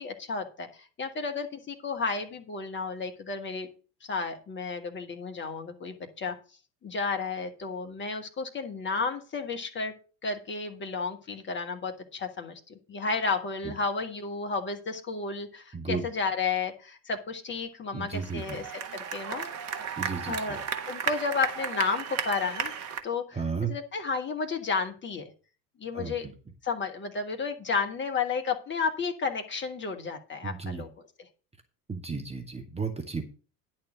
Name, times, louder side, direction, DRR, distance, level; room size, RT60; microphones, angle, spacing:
voice 1, 0.0-3.7 4.0-6.3 6.8-9.9 10.2-19.5 20.2-20.6 20.9-22.7 23.0-23.4 23.7-25.3 25.8-26.3 26.6-30.9, left 4 dB, 20° left, 6 dB, 1.4 m, -32 dB
voice 2, 15.7-16.0 17.9-18.6 20.0-20.6 23.3-23.7 25.9-26.3 30.4-30.8 31.9-33.2, right 4 dB, 10° right, 4 dB, 1.1 m, -34 dB
sound 1, 18.1-23.0, right 7 dB, 30° right, 1.3 m, -34 dB
10.5 x 4.4 x 7.4 m, 0.36 s
figure-of-eight pair, 75°, 50 cm